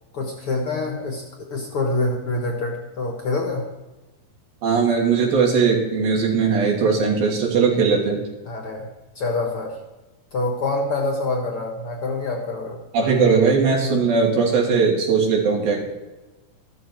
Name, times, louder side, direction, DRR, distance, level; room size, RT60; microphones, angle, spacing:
voice 1, 0.1-1.2 1.5-3.7 8.4-8.9 9.2-9.8 10.3-12.8, left 2 dB, 50° left, 2 dB, 1.9 m, -26 dB
voice 2, 4.6-8.2 12.9-15.8, right 5 dB, 80° right, -2 dB, 4.8 m, -19 dB
14.0 x 12.5 x 4.6 m, 1.1 s
omnidirectional pair, 4.1 m